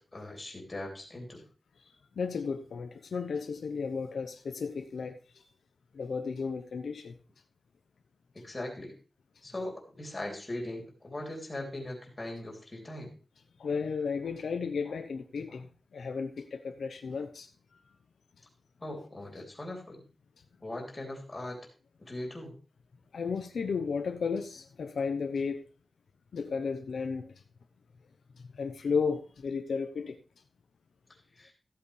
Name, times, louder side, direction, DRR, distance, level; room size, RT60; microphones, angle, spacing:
voice 1, 0.1-1.4 8.3-8.9 9.4-13.1 18.8-20.0 20.6-21.6 22.0-22.6 31.4-31.5, left 1 dB, 20° left, 3.1 m, -40 dB
voice 2, 2.2-5.2 5.9-7.1 13.6-17.5 23.1-25.7 26.3-27.3 28.6-30.2, left 5 dB, 80° left, 0.9 m, -33 dB
14.5 x 8.1 x 3.3 m
wide cardioid pair, 175°, 0 cm